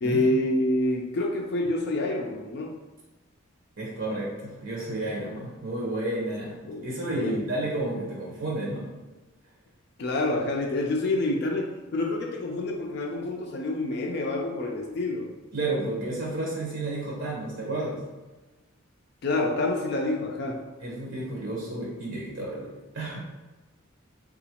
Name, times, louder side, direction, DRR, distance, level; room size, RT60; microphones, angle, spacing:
voice 1, 0.0-2.7 6.6-7.4 10.0-15.3 19.2-20.6, left 2 dB, 50° left, 0 dB, 0.3 m, -27 dB
voice 2, 3.8-6.5 6.8-8.9 15.5-18.0 20.8-23.2, right 2 dB, 60° right, -4 dB, 0.7 m, -31 dB
3.8 x 2.3 x 2.8 m, 1.2 s
head